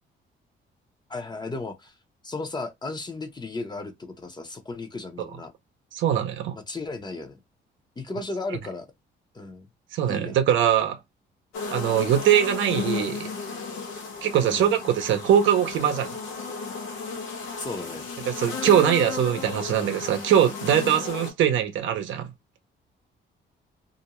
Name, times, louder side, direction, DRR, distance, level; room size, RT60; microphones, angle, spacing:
voice 1, 1.1-1.9 2.2-5.5 6.5-7.4 8.0-8.9 9.3-9.7 10.1-10.4 14.4-14.7 17.6-18.1, left 3 dB, 20° left, 0.6 m, -35 dB
voice 2, 5.9-6.6 9.9-11.0 11.7-13.3 14.2-16.1 18.3-22.3, right 10 dB, 75° right, 0.6 m, -22 dB
sound 1, 11.5-21.3, left 5 dB, 85° left, 0.9 m, -34 dB
2.5 x 2.1 x 2.9 m
cardioid pair, 90°, 20 cm